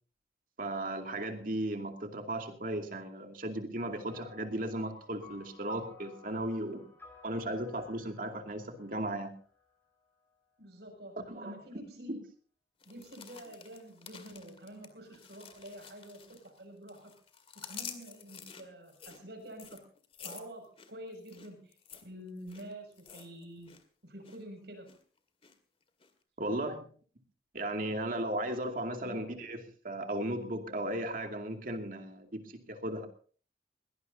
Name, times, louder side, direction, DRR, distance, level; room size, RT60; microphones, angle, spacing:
voice 1, 0.6-6.8 7.2-9.3 11.2-11.6 12.1-12.2 26.4-26.9 27.5-33.1, right 1 dB, 50° right, 4 dB, 2.5 m, -36 dB
sound 1, 4.1-9.9, left 4 dB, 10° left, 5.2 m, -56 dB
voice 2, 10.6-12.1 12.8-17.2 17.5-19.8 20.2-21.7 22.0-23.7 24.0-24.9 29.0-29.3, right 1 dB, 70° right, 3 dB, 6.5 m, -48 dB
sound 2, 12.8-16.6 16.9-23.8 24.1-24.4 24.9-25.5 26.0-26.1, left 7 dB, 35° left, 2.0 m, -50 dB
21.5 x 18.0 x 2.8 m, 0.41 s
head